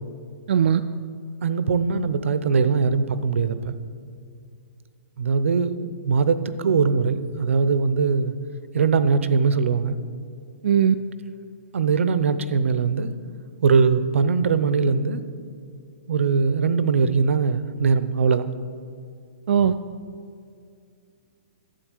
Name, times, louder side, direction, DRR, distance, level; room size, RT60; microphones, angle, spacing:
voice 1, 0.5-0.8 10.6-11.0 19.5-19.7, right 8 dB, 60° right, 8 dB, 0.4 m, -18 dB
voice 2, 1.4-3.7 5.2-8.3 8.7-10.0 11.7-13.1 13.6-15.2 16.1-18.5, right 5 dB, 85° right, 13 dB, 0.8 m, -21 dB
11.5 x 8.2 x 6.4 m, 2.3 s
hypercardioid pair, 170°, 7 cm